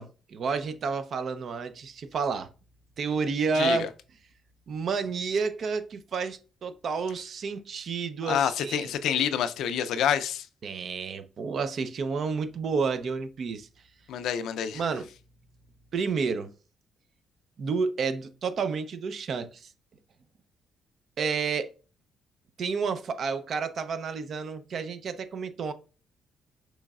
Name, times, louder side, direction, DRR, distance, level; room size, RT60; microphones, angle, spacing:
voice 1, 0.0-2.5 3.0-3.9 4.7-8.9 10.6-13.7 14.7-15.1 15.9-16.5 17.6-19.7 21.2-21.7 22.6-25.7, right 5 dB, 55° right, 0.6 m, -30 dB
voice 2, 3.5-3.9 8.2-10.5 14.1-14.8, left 9 dB, 80° left, 0.4 m, -27 dB
6.2 x 3.2 x 2.3 m
cardioid pair, 90°, 0 cm